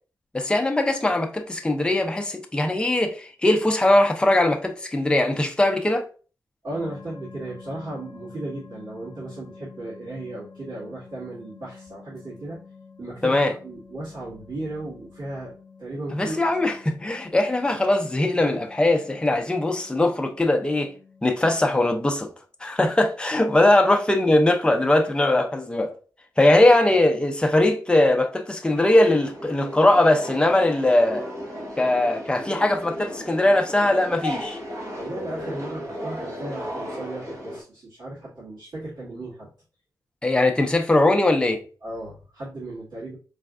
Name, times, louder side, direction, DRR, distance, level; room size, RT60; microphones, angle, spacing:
voice 1, 0.3-6.0 13.2-13.5 16.1-20.9 21.2-22.3 22.6-25.9 26.4-31.3 31.8-34.6 40.2-41.6, left 1 dB, 15° left, 0.6 m, -20 dB
voice 2, 6.6-12.6 13.0-16.7 23.6-23.7 35.0-39.5 41.8-43.2, right 2 dB, 75° right, 2.0 m, -35 dB
sound 1, 6.7-22.0, left 5 dB, 80° left, 0.6 m, -48 dB
sound 2, 28.7-37.6, equal, 45° right, 1.4 m, -35 dB
4.4 x 3.3 x 2.5 m
wide cardioid pair, 150°, 7 cm